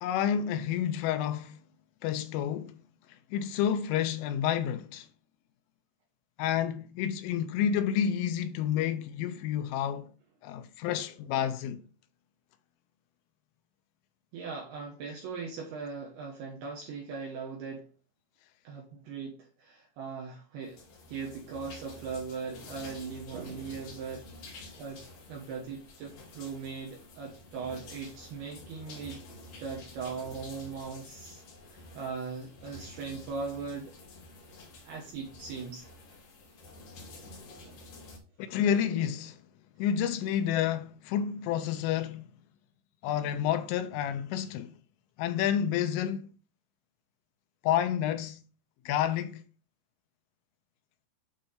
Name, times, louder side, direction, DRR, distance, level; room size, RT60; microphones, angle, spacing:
voice 1, 0.0-1.6 2.0-2.8 3.3-5.1 6.4-10.1 10.4-11.8 38.4-39.4 39.8-42.3 43.0-44.7 45.2-46.3 47.6-48.4 48.9-49.4, left 9 dB, 85° left, 3.0 m, -29 dB
voice 2, 14.3-17.9 18.6-20.8 21.1-25.0 25.3-29.2 29.6-33.9 34.8-35.9 37.6-37.8, right 5 dB, 75° right, 2.4 m, -39 dB
sound 1, 20.7-38.2, left 2 dB, 60° left, 2.4 m, -49 dB
8.6 x 3.3 x 5.6 m
omnidirectional pair, 5.9 m